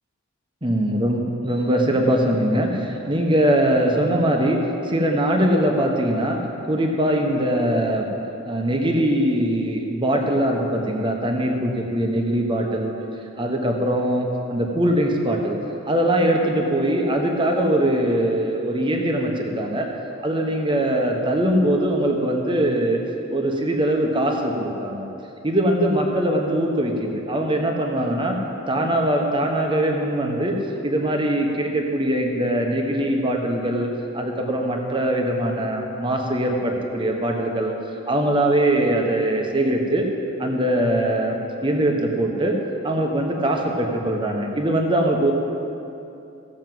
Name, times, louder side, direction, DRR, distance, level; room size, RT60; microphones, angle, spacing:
voice 1, 0.6-6.4 6.7-8.1 8.4-12.9 13.4-15.6 15.9-19.9 20.2-23.0 23.3-25.1 25.4-28.4 28.7-30.5 30.8-33.9 34.1-37.7 38.1-40.1 40.4-42.6 42.8-45.3, right 1 dB, 25° right, 2 dB, 1.2 m, -22 dB
15.5 x 6.5 x 7.7 m, 2.8 s
head